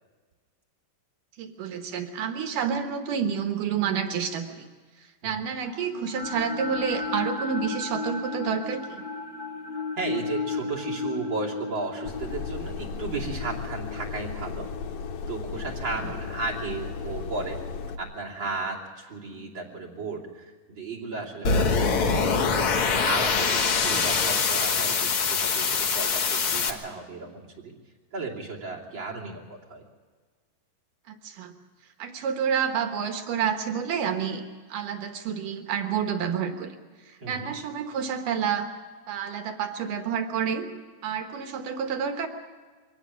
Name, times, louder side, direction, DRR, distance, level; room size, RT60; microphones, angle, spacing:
voice 1, 1.4-4.7 5.2-9.0 23.9-24.0 31.1-31.5 32.0-36.7 37.1-38.7 39.1-40.7 41.0-42.3, right 7 dB, 75° right, 5 dB, 2.8 m, -29 dB
sound 1, 5.6-15.8, left 4 dB, 35° left, 0.8 m, -34 dB
voice 2, 10.0-14.7 15.3-17.6 18.0-22.4 22.9-27.5 28.1-29.8 37.2-37.5, right 3 dB, 35° right, -3 dB, 3.5 m, -34 dB
sound 2, 12.0-18.0, left 5 dB, 75° left, 3.0 m, -35 dB
sound 3, 21.4-26.7, left 5 dB, 50° left, 1.9 m, -24 dB
23.0 x 17.5 x 7.3 m, 1.4 s
omnidirectional pair, 3.9 m